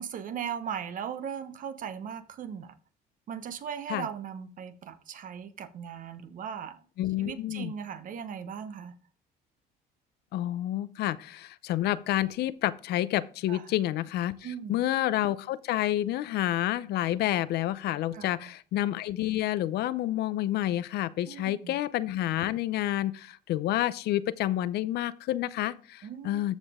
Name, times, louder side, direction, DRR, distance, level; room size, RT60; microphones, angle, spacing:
voice 1, 0.0-2.8 3.3-6.8 7.2-8.9 13.5-13.7 14.4-14.8 18.1-18.5 21.3-21.7 26.0-26.4, right 8 dB, 55° right, 1.0 m, -38 dB
voice 2, 7.0-7.7 10.3-14.4 14.7-26.6, left 14 dB, 75° left, 0.6 m, -29 dB
13.5 x 5.0 x 3.6 m
cardioid pair, 110°, 17 cm